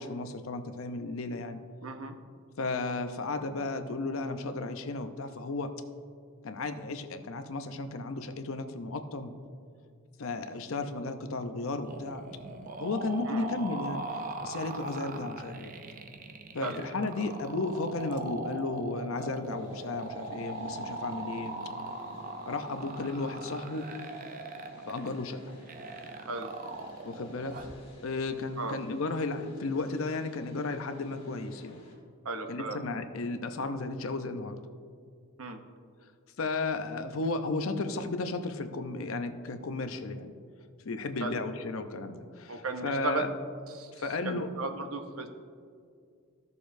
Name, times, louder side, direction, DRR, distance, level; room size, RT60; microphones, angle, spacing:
voice 1, 0.0-1.6 2.6-5.7 6.4-9.3 10.2-12.2 12.8-15.7 16.5-21.6 22.5-23.8 24.9-25.4 27.0-27.5 28.0-31.8 32.5-34.6 36.4-40.3 40.8-43.3 43.9-44.5, left 3 dB, 75° left, 8 dB, 0.7 m, -34 dB
voice 2, 1.8-2.1 13.3-13.5 16.6-16.8 26.3-26.5 28.6-28.8 32.2-32.8 35.4-35.6 41.2-41.4 42.5-43.3 43.7-45.3, right 3 dB, 85° right, 6 dB, 0.8 m, -35 dB
sound 1, 11.8-27.8, right 2 dB, 40° right, 0.6 m, -40 dB
sound 2, 19.5-31.9, left 1 dB, 30° left, 1.6 m, -56 dB
15.0 x 6.7 x 2.6 m, 2.2 s
head